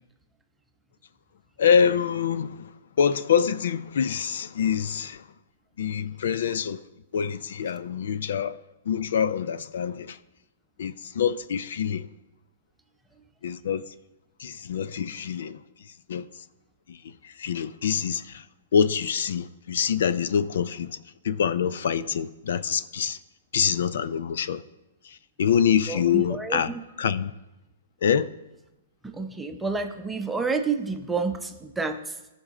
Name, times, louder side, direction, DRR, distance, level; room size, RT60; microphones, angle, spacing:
voice 1, 1.6-2.7 3.0-5.2 5.8-6.8 7.1-8.6 8.9-10.2 10.8-12.1 13.4-13.9 14.4-15.6 16.1-16.2 16.9-18.5 18.7-21.0 21.2-23.2 23.5-24.6 25.0-26.7 27.0-27.3 28.0-28.3, left 7 dB, 70° left, 0.4 m, -25 dB
voice 2, 25.9-26.8 29.0-32.2, right 4 dB, 5° right, 0.7 m, -29 dB
15.5 x 5.3 x 3.7 m
hypercardioid pair, 150°, 0 cm